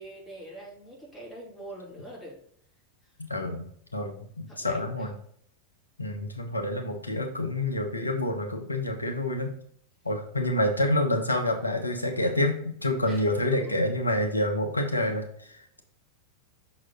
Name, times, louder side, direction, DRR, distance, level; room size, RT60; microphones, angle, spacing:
voice 1, 0.0-2.3 4.5-5.1 13.1-13.7, right 1 dB, 15° left, -4 dB, 2.6 m, -44 dB
voice 2, 3.3-3.6 3.9-5.1 6.0-9.5 10.0-15.8, left 1 dB, 85° left, 4 dB, 0.8 m, -28 dB
6.2 x 4.1 x 3.8 m, 0.63 s
figure-of-eight pair, 90°, 0 cm